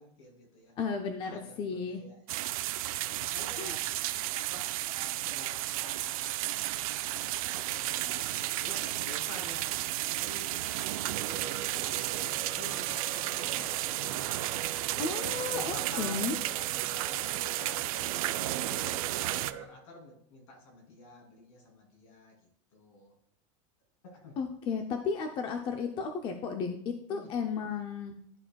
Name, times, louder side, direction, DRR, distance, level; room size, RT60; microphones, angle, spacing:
voice 1, 0.0-0.7 1.2-2.6 3.0-3.9 4.3-6.6 7.1-9.9 10.2-10.8 11.2-14.1 14.9-15.1 15.4-18.1 18.6-22.4 22.7-23.1 24.0-24.4 27.1-27.3, left 1 dB, 70° left, 0 dB, 3.0 m, -50 dB
voice 2, 0.8-2.0 3.6-3.8 15.0-16.3 24.4-28.1, left 5 dB, 30° left, 4 dB, 0.6 m, -34 dB
sound 1, 2.3-19.5, right 15 dB, 85° right, 0.4 m, -33 dB
sound 2, 11.1-19.7, right 7 dB, 55° right, 1.4 m, -44 dB
12.0 x 4.2 x 2.3 m, 0.65 s
supercardioid pair, 160°, 17 cm